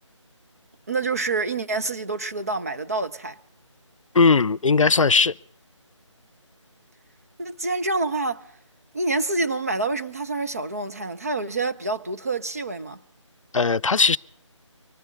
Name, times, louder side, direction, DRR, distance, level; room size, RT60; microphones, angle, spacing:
voice 1, 0.9-3.4 7.4-8.4 8.9-13.0, right 3 dB, 30° right, 0.6 m, -27 dB
voice 2, 4.1-5.3 13.5-14.2, left 4 dB, 80° left, 0.5 m, -18 dB
24.0 x 8.0 x 5.1 m
figure-of-eight pair, 160°, 16 cm